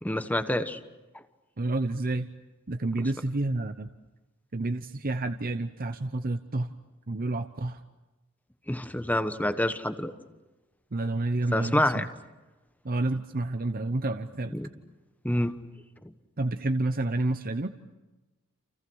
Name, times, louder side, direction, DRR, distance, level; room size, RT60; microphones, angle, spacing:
voice 1, 0.0-0.8 8.7-10.1 11.5-12.1 14.5-14.7 15.2-15.5, left 1 dB, 5° left, 10 dB, 1.3 m, -27 dB
voice 2, 1.6-2.3 2.7-3.9 4.5-6.7 7.1-7.8 10.9-12.1 12.8-14.5 16.4-17.7, right 2 dB, 40° right, 8 dB, 0.9 m, -29 dB
29.5 x 29.0 x 6.3 m, 1.1 s
head